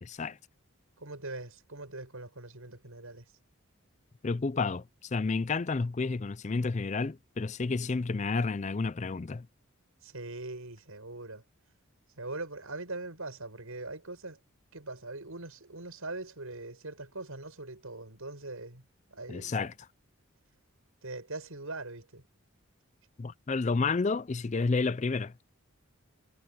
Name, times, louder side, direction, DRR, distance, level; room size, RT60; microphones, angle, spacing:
voice 1, 0.0-0.4 4.2-9.5 19.3-19.7 23.2-25.3, left 4 dB, 35° left, 0.4 m, -30 dB
voice 2, 1.0-3.2 10.0-11.4 12.2-14.4 14.7-18.8 19.1-19.6 21.0-22.2, right 2 dB, 80° right, 6.4 m, -41 dB
head